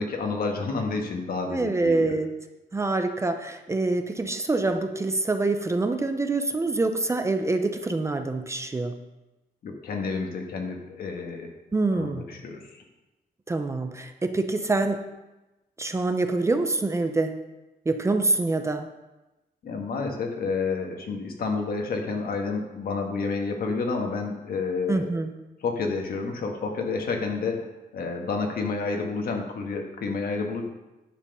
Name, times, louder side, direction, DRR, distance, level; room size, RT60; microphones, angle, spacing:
voice 1, 0.0-2.1 9.6-11.5 11.9-12.6 19.6-25.1 25.6-27.7 27.9-30.6, left 4 dB, 65° left, 2 dB, 1.6 m, -29 dB
voice 2, 1.5-2.3 2.7-9.0 11.7-12.2 13.5-15.0 15.8-17.3 17.9-18.9 24.9-25.3, right 3 dB, 15° right, 7 dB, 0.6 m, -25 dB
10.0 x 6.7 x 5.5 m, 1.0 s
wide cardioid pair, 155°, 16 cm